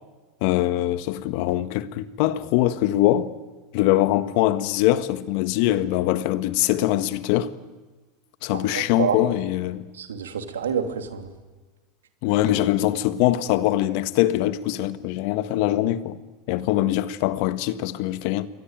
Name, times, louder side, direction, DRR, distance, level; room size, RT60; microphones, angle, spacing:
voice 1, 0.4-3.3 3.7-7.5 8.4-9.8 12.2-16.2 16.5-18.5, left 14 dB, 65° left, 1.6 m, -22 dB
voice 2, 8.5-9.3 10.0-11.3, right 7 dB, 85° right, 3.0 m, -28 dB
28.5 x 22.5 x 9.2 m
hypercardioid pair, 95°, 0 cm